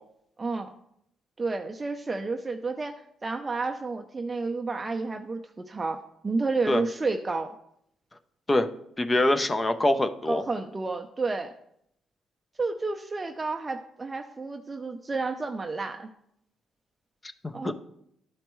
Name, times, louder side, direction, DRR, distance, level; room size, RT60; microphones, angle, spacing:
voice 1, 0.4-0.7 1.4-7.6 10.3-11.5 12.6-16.1 17.5-17.7, right 3 dB, 25° right, 4 dB, 0.5 m, -31 dB
voice 2, 9.0-10.4 17.6-17.7, left 1 dB, 20° left, 9 dB, 0.6 m, -23 dB
12.0 x 4.4 x 3.1 m, 0.73 s
cardioid pair, 90°, 0 cm